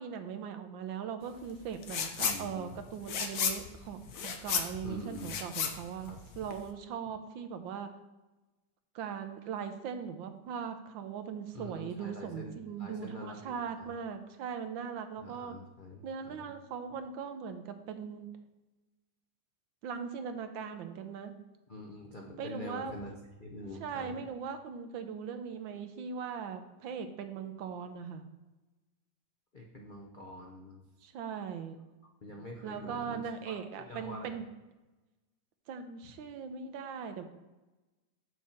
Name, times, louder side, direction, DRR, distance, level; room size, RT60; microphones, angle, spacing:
voice 1, 0.0-7.9 8.9-15.6 16.0-18.3 19.8-21.3 22.4-22.9 23.6-28.2 31.0-31.8 32.6-34.5 35.7-37.2, right 7 dB, 75° right, 8 dB, 1.4 m, -40 dB
sound 1, 1.8-2.4 2.7-6.7, left 7 dB, 60° left, 1.0 m, -34 dB
voice 2, 2.2-2.8 4.8-5.3 6.0-6.2 11.5-13.9 15.2-16.4 21.7-23.1 23.4-24.2 29.5-30.8 32.2-34.4, left 1 dB, 85° left, 0 dB, 0.4 m, -45 dB
7.1 x 6.3 x 4.3 m, 1.1 s
omnidirectional pair, 2.2 m